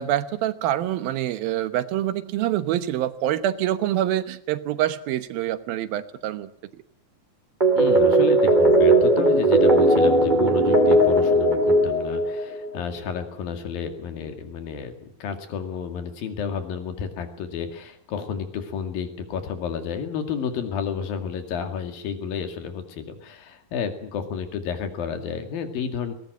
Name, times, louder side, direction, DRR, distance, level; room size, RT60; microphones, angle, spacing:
voice 1, 0.0-6.5, right 12 dB, 90° right, 12 dB, 3.0 m, -26 dB
sound 1, 7.6-12.8, right 1 dB, 15° right, 2.3 m, -18 dB
voice 2, 7.8-26.1, left 6 dB, 80° left, 7 dB, 4.1 m, -31 dB
20.5 x 18.5 x 9.2 m, 0.66 s
omnidirectional pair, 4.1 m